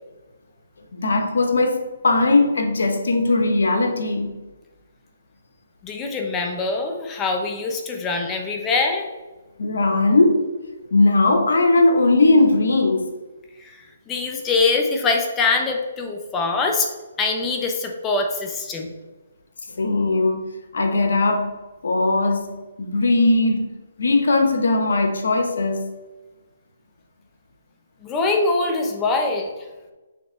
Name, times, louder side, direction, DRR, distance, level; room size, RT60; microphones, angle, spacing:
voice 1, 0.9-4.4 9.6-10.5 10.9-13.1 19.8-21.5 21.8-22.5 22.8-23.7 24.0-25.8, left 2 dB, 80° left, 5 dB, 1.0 m, -19 dB
voice 2, 5.8-9.1 13.6-13.7 14.1-16.9 17.2-18.9 28.0-29.5, left 3 dB, 15° left, 3 dB, 0.8 m, -23 dB
6.4 x 3.3 x 4.5 m, 1.2 s
hypercardioid pair, 155°, 0 cm